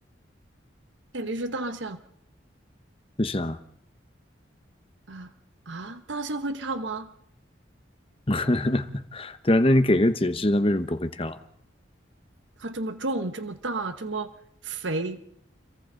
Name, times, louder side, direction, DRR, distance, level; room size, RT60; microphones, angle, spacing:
voice 1, 1.1-2.0 5.1-5.3 5.7-7.1 12.6-14.3 14.6-15.2, right 2 dB, 80° right, 1.1 m, -31 dB
voice 2, 3.2-3.6 8.3-11.4, left 1 dB, 30° left, 1.0 m, -23 dB
29.5 x 23.0 x 3.9 m
head